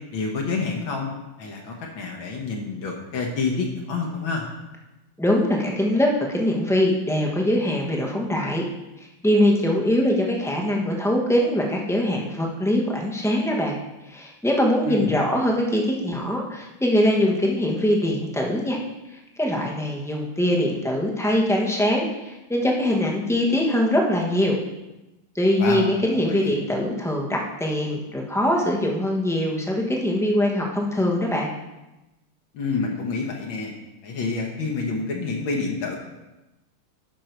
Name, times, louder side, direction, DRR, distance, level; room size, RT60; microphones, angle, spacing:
voice 1, 0.1-1.1 1.4-4.5 14.9-15.1 25.6-25.8 26.1-26.5 32.5-33.7 34.0-36.0, left 4 dB, 70° left, -1 dB, 1.9 m, -28 dB
voice 2, 5.2-8.6 9.2-13.8 14.1-18.8 19.4-24.6 25.3-31.5, left 1 dB, 5° left, -1 dB, 0.5 m, -22 dB
11.5 x 5.3 x 4.5 m, 1.0 s
omnidirectional pair, 2.3 m